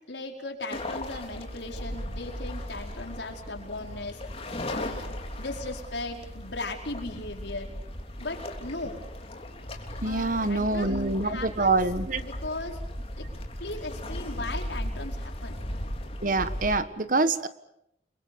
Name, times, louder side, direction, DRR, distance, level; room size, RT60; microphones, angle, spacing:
voice 1, 0.1-4.2 4.7-5.1 5.4-7.7 8.2-9.0 10.0-11.8 12.2-12.8 13.2-13.3 13.6-15.6, left 2 dB, 80° left, 2 dB, 5.0 m, -37 dB
sound 1, 0.7-16.8, left 1 dB, 35° left, 3.5 m, -37 dB
voice 2, 10.0-12.2 16.2-17.5, right 3 dB, 50° right, 12 dB, 1.4 m, -25 dB
30.0 x 22.5 x 7.0 m, 0.77 s
head